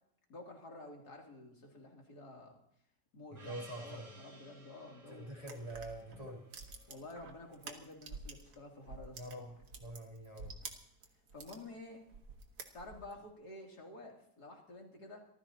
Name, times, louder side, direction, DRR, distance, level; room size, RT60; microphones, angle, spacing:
voice 1, 0.3-2.6 3.1-5.6 6.9-9.5 11.3-12.0 12.7-15.3, left 2 dB, 65° left, 0 dB, 3.6 m, -51 dB
voice 2, 3.3-4.1 5.1-6.4 9.1-9.5 9.8-10.5, right 1 dB, 20° right, -5 dB, 3.1 m, -45 dB
Gong, 3.3-8.1, right 2 dB, 45° right, 4.5 m, -59 dB
sound 1, 5.4-8.6 8.8-11.6 12.1-13.2, right 4 dB, 65° right, 2.1 m, -49 dB
25.5 x 15.0 x 2.9 m, 0.72 s
omnidirectional pair, 1.8 m